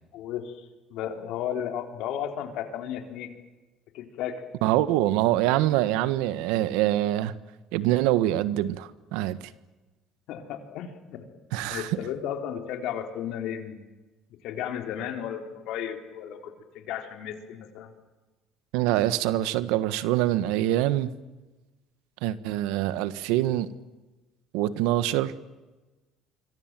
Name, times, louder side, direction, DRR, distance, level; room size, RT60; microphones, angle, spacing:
voice 1, 0.1-3.3 3.9-4.4 10.3-11.3 11.7-13.8 14.4-17.9, left 9 dB, 75° left, 6 dB, 3.8 m, -34 dB
voice 2, 4.6-7.3 7.7-9.4 11.5-12.0 18.7-21.1 22.2-23.7 24.5-25.3, right 14 dB, 85° right, 15 dB, 1.4 m, -25 dB
25.5 x 25.0 x 7.6 m, 1.2 s
supercardioid pair, 100°, 0 cm